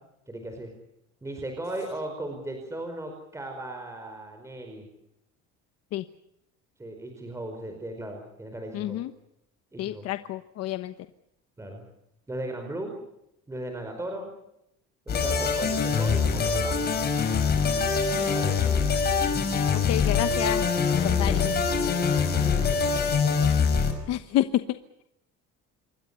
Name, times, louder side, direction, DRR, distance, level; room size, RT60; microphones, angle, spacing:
voice 1, 0.3-0.7 1.2-4.9 6.8-9.0 9.7-10.1 11.6-11.8 12.3-13.0 13.5-14.3 15.1-16.9 18.1-18.9 19.3-19.9 20.9-24.2, right 1 dB, 10° right, 4 dB, 4.9 m, -38 dB
voice 2, 8.7-9.1 9.8-10.9 18.0-18.4 19.7-20.6 21.0-21.5 24.1-24.6, left 13 dB, 55° left, 10 dB, 1.2 m, -29 dB
sound 1, 15.1-23.9, left 5 dB, 35° left, 5.2 m, -24 dB
27.5 x 23.0 x 6.9 m, 0.80 s
cardioid pair, 160°, 30 cm